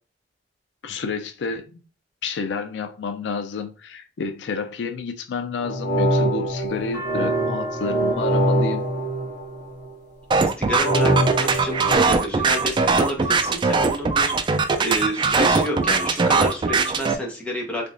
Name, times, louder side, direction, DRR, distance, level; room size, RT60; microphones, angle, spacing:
voice 1, 0.8-1.8 2.2-8.9, left 4 dB, 75° left, 0.4 m, -30 dB
sound 1, 5.6-9.9 10.8-12.0, right 1 dB, 25° left, 2.0 m, -23 dB
sound 2, 6.5-10.7 11.6-12.0 12.6-13.3 13.6-13.7 13.9-14.7, left 1 dB, 45° right, 1.2 m, -39 dB
sound 3, 10.3-17.1, right 4 dB, 25° right, 0.3 m, -20 dB
voice 2, 10.6-11.1 11.4-11.8 12.1-17.9, equal, 5° left, 1.0 m, -29 dB
3.6 x 3.3 x 2.5 m
head